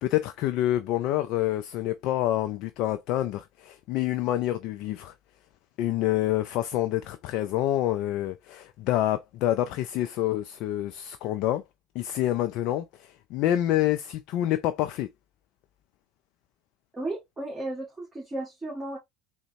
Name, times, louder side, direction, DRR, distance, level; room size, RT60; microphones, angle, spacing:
voice 1, 0.0-5.1 5.8-11.6 12.0-15.1, left 13 dB, 60° left, 0.3 m, -27 dB
voice 2, 16.9-19.0, right 2 dB, 15° right, 1.7 m, -34 dB
3.8 x 2.2 x 2.5 m
hypercardioid pair, 80°, 0 cm